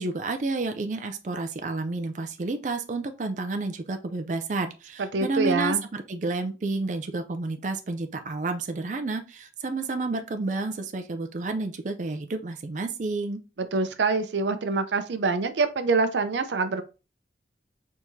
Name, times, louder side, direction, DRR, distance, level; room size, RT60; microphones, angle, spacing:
voice 1, 0.0-13.4, right 3 dB, 45° right, 7 dB, 0.4 m, -30 dB
voice 2, 5.0-5.8 13.6-16.8, right 4 dB, 90° right, 10 dB, 0.6 m, -25 dB
4.6 x 3.5 x 2.7 m, 0.31 s
head